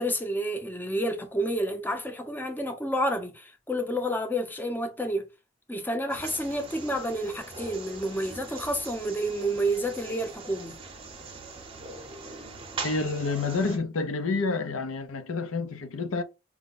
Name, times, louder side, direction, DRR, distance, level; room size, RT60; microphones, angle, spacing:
voice 1, 0.0-5.2 5.7-10.8, equal, 10° left, 0.5 m, -29 dB
sound 1, 6.1-13.8, right 3 dB, 25° right, 0.7 m, -41 dB
voice 2, 12.8-16.2, left 3 dB, 85° left, 0.6 m, -29 dB
4.6 x 2.1 x 3.9 m
head